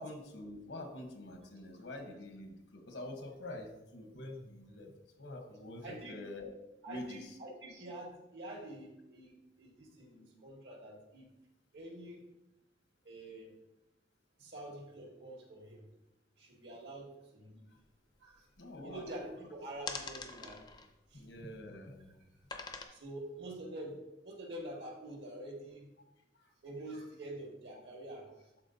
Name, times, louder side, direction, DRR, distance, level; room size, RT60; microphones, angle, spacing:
voice 1, 0.0-6.5 6.9-7.4 18.6-19.1 21.1-22.1, left 1 dB, 75° left, 5 dB, 1.1 m, -46 dB
voice 2, 5.8-6.2 6.8-11.3 11.7-12.2 13.0-13.5 14.4-15.9 16.4-17.7 18.2-18.4 18.8-20.6 21.1-21.2 22.9-24.0 24.2-25.9 26.6-28.3, right 1 dB, 70° right, -1 dB, 1.8 m, -46 dB
sound 1, 17.9-18.0 18.2-19.4 19.8-21.8 22.5-22.8, left 4 dB, 25° left, 0.5 m, -45 dB
12.0 x 4.2 x 2.7 m, 0.94 s
head